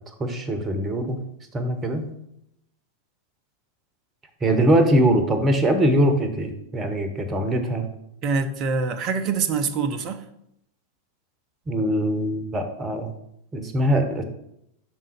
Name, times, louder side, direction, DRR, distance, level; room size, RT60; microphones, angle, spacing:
voice 1, 0.2-1.2 1.5-2.1 4.4-7.9 11.7-13.1 13.5-14.2, right 1 dB, 20° right, 7 dB, 0.9 m, -22 dB
voice 2, 8.2-10.2, right 4 dB, 35° right, 9 dB, 0.5 m, -25 dB
6.2 x 3.7 x 5.7 m, 0.79 s
figure-of-eight pair, 90°, 0 cm